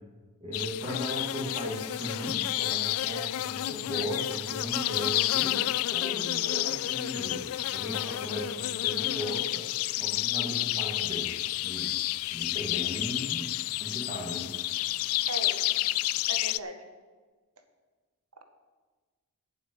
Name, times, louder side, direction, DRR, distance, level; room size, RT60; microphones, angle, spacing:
voice 1, 0.4-9.7 10.0-11.3 11.6-11.9 12.3-14.5, equal, 25° right, -2 dB, 2.6 m, -37 dB
sound 1, 0.5-16.6, left 16 dB, 65° left, 0.3 m, -30 dB
voice 2, 15.3-15.7 16.3-16.9 18.4-18.5, right 2 dB, 75° right, 5 dB, 1.6 m, -38 dB
8.2 x 7.8 x 8.6 m, 1.4 s
head